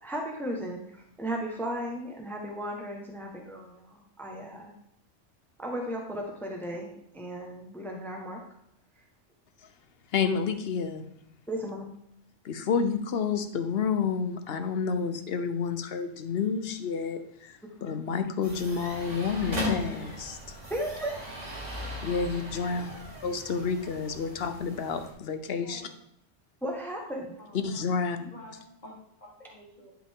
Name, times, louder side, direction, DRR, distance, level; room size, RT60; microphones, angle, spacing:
voice 1, 0.0-4.7 5.6-8.4 11.5-11.9 17.8-17.9 20.7-21.2 26.6-27.3, right 1 dB, ahead, 1 dB, 1.2 m, -35 dB
voice 2, 10.1-11.0 12.4-20.4 22.0-22.9 23.2-25.8 27.6-28.2, left 6 dB, 60° left, 9 dB, 0.9 m, -30 dB
sound 1, 18.4-25.1, equal, 85° right, 2.7 m, -38 dB
voice 3, 27.1-27.7 28.2-29.9, left 1 dB, 40° left, -2 dB, 2.1 m, -49 dB
11.0 x 5.1 x 3.6 m, 0.75 s
omnidirectional pair, 1.2 m